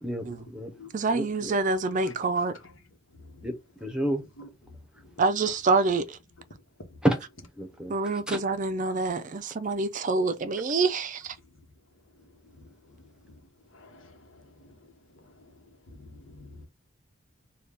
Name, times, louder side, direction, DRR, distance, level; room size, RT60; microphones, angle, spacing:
voice 1, 0.0-0.7 1.1-1.5 3.4-3.6 3.8-4.3 7.0-7.2 7.6-7.9 8.3-8.4, right 1 dB, 5° right, 0.8 m, -29 dB
voice 2, 0.9-2.6 5.2-6.2 7.9-11.3, right 3 dB, 40° right, 0.4 m, -26 dB
voice 3, 16.0-16.7, left 2 dB, 70° left, 1.2 m, -47 dB
4.0 x 2.3 x 3.3 m
head